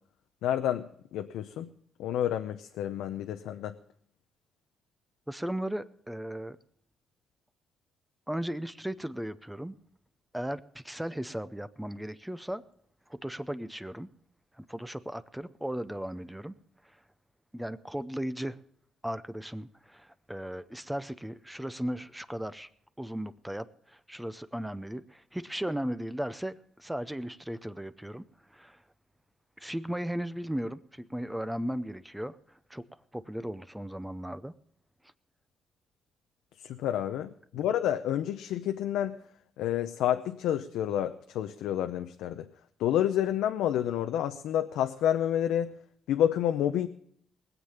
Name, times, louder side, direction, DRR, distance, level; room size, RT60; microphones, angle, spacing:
voice 1, 0.4-1.7 2.0-3.7 36.6-39.1 39.6-42.4 42.8-45.7 46.1-46.9, left 10 dB, 90° left, 7 dB, 0.7 m, -29 dB
voice 2, 5.3-6.6 8.3-9.8 10.3-12.6 13.1-14.1 14.5-16.5 16.9-17.0 17.5-18.6 19.0-22.7 23.0-28.8 29.6-32.8 33.1-34.5, equal, 5° right, 13 dB, 0.6 m, -36 dB
20.0 x 7.5 x 6.6 m, 0.65 s
cardioid pair, 90°, 0 cm